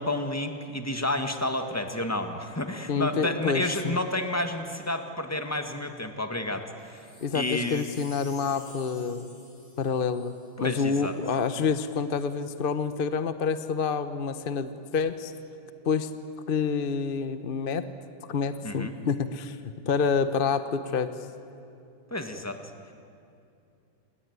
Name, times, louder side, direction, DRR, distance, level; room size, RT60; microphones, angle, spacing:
voice 1, 0.0-7.8 10.6-11.1 18.6-19.0 22.1-22.6, left 1 dB, 10° left, 6 dB, 1.5 m, -30 dB
voice 2, 2.9-4.0 7.2-9.3 9.8-10.3 10.6-15.3 15.9-16.1 16.5-17.9 18.3-19.6 19.9-21.1, left 5 dB, 40° left, 11 dB, 0.8 m, -28 dB
Wind chime, 6.8-11.2 11.7-11.8, left 2 dB, 90° left, 7.6 m, -51 dB
27.5 x 20.5 x 9.6 m, 2.6 s
omnidirectional pair, 2.2 m